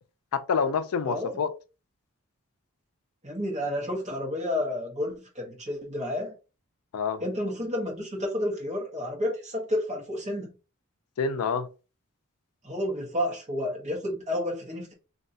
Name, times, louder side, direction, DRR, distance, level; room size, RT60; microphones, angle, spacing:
voice 1, 0.3-1.5 6.9-7.2 11.2-11.7, left 5 dB, 80° left, 0.4 m, -27 dB
voice 2, 1.0-1.4 3.2-6.3 7.2-10.5 12.6-14.9, left 1 dB, 30° right, 1.3 m, -30 dB
3.1 x 2.7 x 2.7 m
head